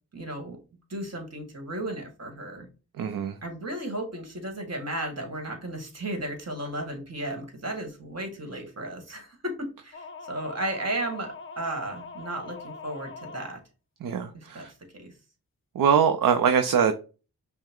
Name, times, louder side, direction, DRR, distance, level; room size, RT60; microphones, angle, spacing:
voice 1, 0.1-0.6 0.9-2.7 3.4-13.6 14.3-14.7 14.9-15.1, right 1 dB, 45° right, 4 dB, 1.6 m, -34 dB
voice 2, 3.0-3.3 14.0-14.7 15.8-16.9, right 7 dB, 60° right, 8 dB, 0.6 m, -23 dB
sound 1, 9.9-13.5, left 4 dB, 35° left, 0.5 m, -42 dB
5.4 x 2.1 x 3.6 m, 0.33 s
cardioid pair, 45°, 37 cm